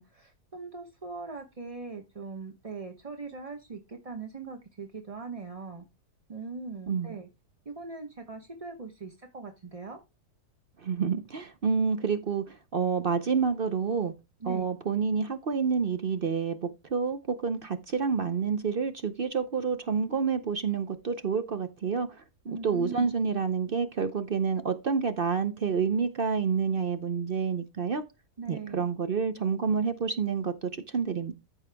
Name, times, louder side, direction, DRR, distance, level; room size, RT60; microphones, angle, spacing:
voice 1, 0.0-5.8 6.3-7.3 7.6-10.0 14.4-14.6 22.5-23.3 28.4-28.8, right 4 dB, 25° right, 0.9 m, -40 dB
voice 2, 6.9-7.2 10.8-14.1 14.5-28.0 28.5-31.3, right 5 dB, 55° right, 0.6 m, -28 dB
14.0 x 5.6 x 3.4 m
omnidirectional pair, 1.8 m